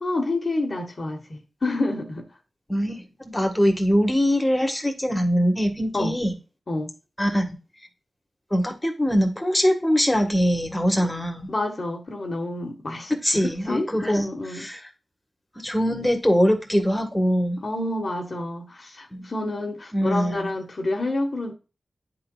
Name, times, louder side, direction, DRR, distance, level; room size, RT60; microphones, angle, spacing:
voice 1, 0.0-2.3 5.9-6.1 6.7-6.9 11.0-11.1 11.5-14.7 17.6-21.5, left 2 dB, 50° left, 2 dB, 1.4 m, -28 dB
voice 2, 2.7-6.3 7.2-7.6 8.5-11.5 13.2-14.3 14.5-14.8 15.6-17.6 19.1-19.3 19.9-20.5, equal, 10° left, 3 dB, 1.6 m, -22 dB
10.5 x 3.9 x 2.3 m, 0.31 s
wide cardioid pair, 65°, 0 cm